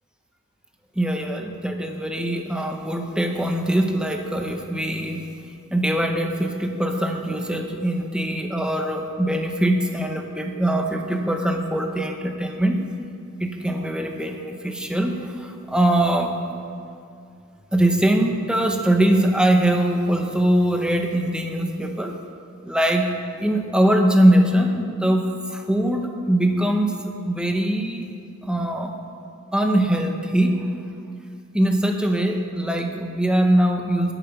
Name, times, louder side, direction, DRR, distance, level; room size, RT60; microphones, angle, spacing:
voice 1, 1.0-5.3 5.7-12.9 13.4-16.4 17.7-22.1 22.6-28.1 28.4-28.9 29.5-30.7 31.5-34.1, right 1 dB, 5° right, 3 dB, 0.9 m, -22 dB
19.0 x 7.1 x 5.7 m, 2.4 s
head